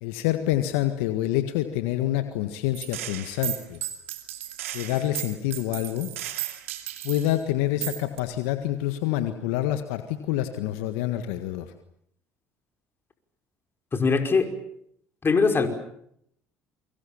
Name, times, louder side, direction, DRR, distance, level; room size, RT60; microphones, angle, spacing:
voice 1, 0.0-3.8 4.7-6.1 7.0-11.6, left 13 dB, 75° left, 9 dB, 1.7 m, -27 dB
Gunshot gunfire, 2.7-7.4 7.8-8.2, right 14 dB, 85° right, 2.7 m, -34 dB
voice 2, 13.9-14.5 15.2-15.7, left 4 dB, 30° left, 6 dB, 5.4 m, -21 dB
28.5 x 25.0 x 7.3 m, 0.71 s
hypercardioid pair, 60°, 7 cm